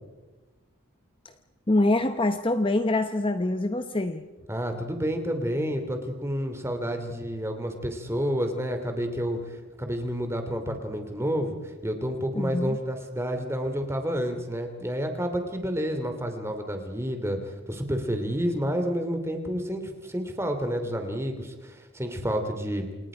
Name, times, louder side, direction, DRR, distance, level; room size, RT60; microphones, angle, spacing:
voice 1, 1.7-4.3 12.3-12.8, left 2 dB, 25° left, 8 dB, 0.8 m, -25 dB
voice 2, 4.5-9.4 9.8-22.9, equal, 10° right, 5 dB, 2.7 m, -29 dB
28.5 x 28.0 x 5.1 m, 1.2 s
head